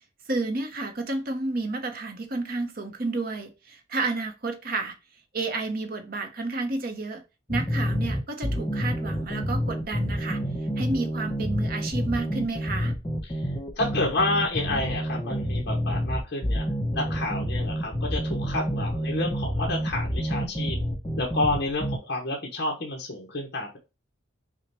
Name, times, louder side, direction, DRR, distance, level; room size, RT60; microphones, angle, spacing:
voice 1, 0.3-5.0 5.3-7.2 7.5-10.4 10.8-12.9, right 3 dB, 45° right, 0.7 m, -31 dB
sound 1, 7.5-22.0, equal, 20° left, 0.6 m, -28 dB
voice 2, 13.8-16.6 16.9-20.8 21.2-23.8, left 2 dB, 50° left, 0.9 m, -29 dB
5.9 x 2.2 x 2.9 m
head